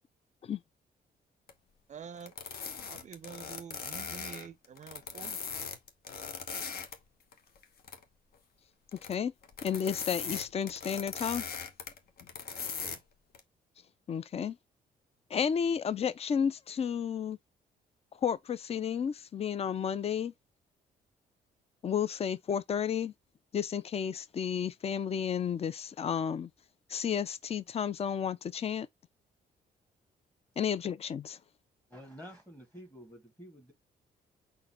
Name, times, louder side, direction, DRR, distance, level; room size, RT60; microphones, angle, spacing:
sound 1, 1.5-1.6 2.2-6.9 7.3-8.0 8.9-9.2 9.4-13.0 13.3-13.4, left 6 dB, 65° left, 1.0 m, -39 dB
voice 1, 1.9-2.3 2.9-5.4 12.8-13.0, right 7 dB, 45° right, 0.4 m, -47 dB
voice 2, 9.6-11.4 14.1-14.6 15.3-17.4 18.2-20.3 21.8-23.1 23.5-26.5 26.9-28.9 30.6-31.4, left 7 dB, 35° left, 0.4 m, -32 dB
voice 3, 31.9-33.7, equal, 10° left, 1.3 m, -49 dB
4.0 x 2.6 x 4.2 m
cardioid pair, 85°, 17 cm